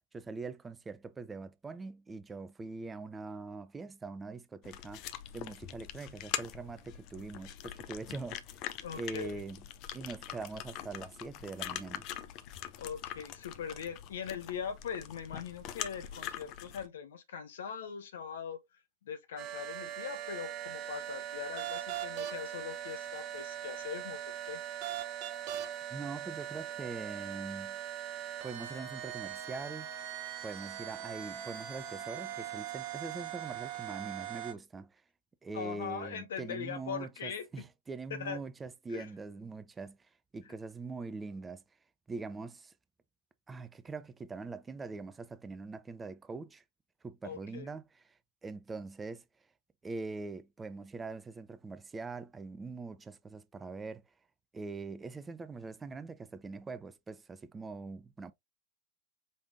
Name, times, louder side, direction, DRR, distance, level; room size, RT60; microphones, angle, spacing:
voice 1, 0.1-5.0 5.3-8.7 8.9-9.6 9.9-12.0 25.9-27.8 28.4-29.9 30.4-35.0 35.4-41.6 42.1-42.7 43.5-46.6 47.0-48.0 48.4-49.2 49.8-54.0 54.5-58.3, right 3 dB, 15° right, 0.4 m, -43 dB
sound 1, 4.6-16.9, left 11 dB, 40° left, 0.6 m, -43 dB
voice 2, 8.8-9.4 12.8-18.6 19.0-24.6 35.5-37.7 38.1-38.4 38.9-39.1 47.2-47.7, left 7 dB, 60° left, 0.9 m, -41 dB
sound 2, 19.4-34.5, right 11 dB, 40° right, 0.8 m, -40 dB
5.3 x 3.3 x 2.5 m
figure-of-eight pair, 90°, 0 cm